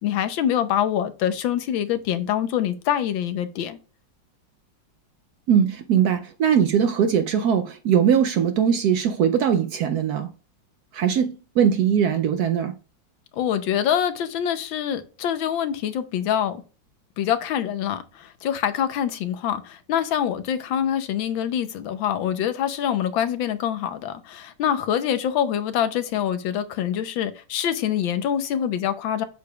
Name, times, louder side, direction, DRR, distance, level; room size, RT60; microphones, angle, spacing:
voice 1, 0.0-3.8 13.3-16.6 17.2-29.2, left 9 dB, 85° left, 1.5 m, -25 dB
voice 2, 5.5-10.3 10.9-12.7, right 8 dB, 70° right, 0.9 m, -20 dB
8.2 x 6.7 x 2.3 m
omnidirectional pair, 2.1 m